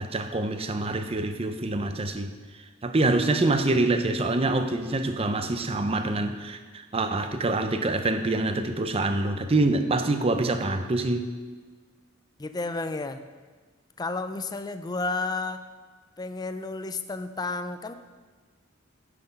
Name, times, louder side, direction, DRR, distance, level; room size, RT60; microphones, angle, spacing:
voice 1, 0.0-11.3, right 2 dB, 30° right, 8 dB, 0.6 m, -26 dB
voice 2, 12.4-13.2 14.0-15.6 16.2-17.9, left 3 dB, 20° left, 10 dB, 0.4 m, -31 dB
9.7 x 6.0 x 5.2 m, 1.4 s
head